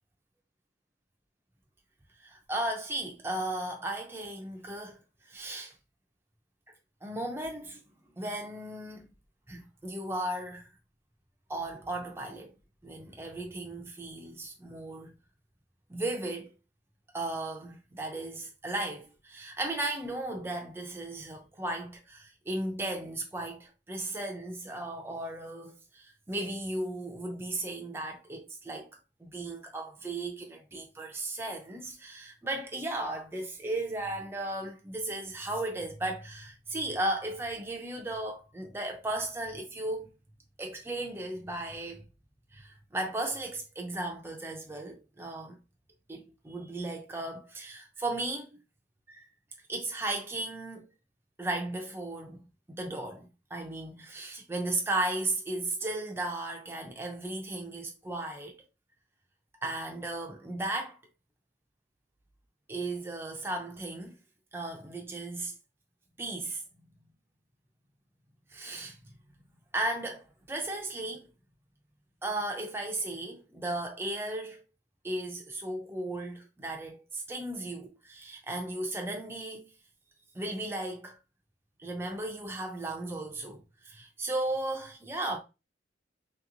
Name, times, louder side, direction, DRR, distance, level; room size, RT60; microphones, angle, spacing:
voice 1, 2.2-5.0 5.2-5.7 7.0-7.8 8.2-9.1 9.5-10.7 11.5-12.5 12.8-15.2 15.9-16.5 17.1-28.9 29.2-40.1 40.6-42.0 42.5-45.6 46.1-48.6 49.1-49.3 49.7-50.9 51.4-58.6 59.6-61.0 62.7-64.1 64.5-65.5 66.2-66.6 68.5-69.1 69.7-71.3 72.2-74.6 75.0-79.6 80.3-81.2 81.8-85.4, right 2 dB, 10° right, 0.4 m, -35 dB
3.0 x 2.9 x 2.5 m
head